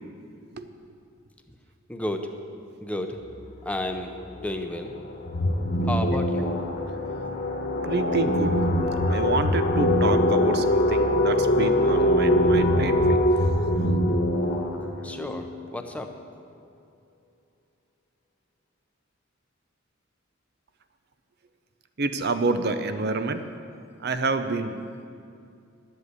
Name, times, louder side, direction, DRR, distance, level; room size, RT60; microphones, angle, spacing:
voice 1, 1.9-2.3 2.8-5.0 5.8-6.6 15.0-16.1, left 1 dB, 5° left, 4 dB, 0.7 m, -32 dB
sound 1, 3.3-3.5 3.8-15.4, left 1 dB, 45° left, 1.3 m, -25 dB
sound 2, 5.3-15.2, equal, 60° left, 1.4 m, -27 dB
voice 2, 7.8-8.6 9.0-13.2 22.0-23.4 24.0-24.8, right 3 dB, 55° right, 9 dB, 0.7 m, -28 dB
11.0 x 7.9 x 8.2 m, 2.4 s
head